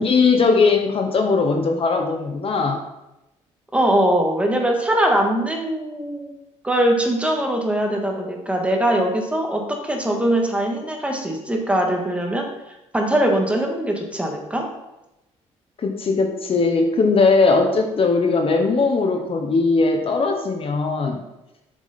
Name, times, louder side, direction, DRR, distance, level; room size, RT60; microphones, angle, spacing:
voice 1, 0.0-2.8 15.8-21.2, left 4 dB, 45° left, 4 dB, 1.1 m, -19 dB
voice 2, 3.7-6.3 6.6-12.5 12.9-14.6, right 1 dB, 10° right, 1 dB, 1.9 m, -21 dB
7.4 x 6.4 x 4.2 m, 0.91 s
cardioid pair, 80°, 13 cm